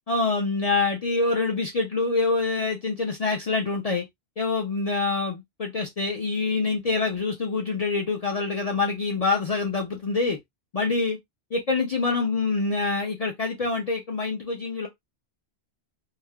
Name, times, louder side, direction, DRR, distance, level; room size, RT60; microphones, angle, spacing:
voice 1, 0.1-4.0 4.4-10.4 10.7-11.2 11.5-14.9, left 3 dB, 50° left, 0.5 m, -26 dB
3.2 x 2.0 x 2.2 m
omnidirectional pair, 1.1 m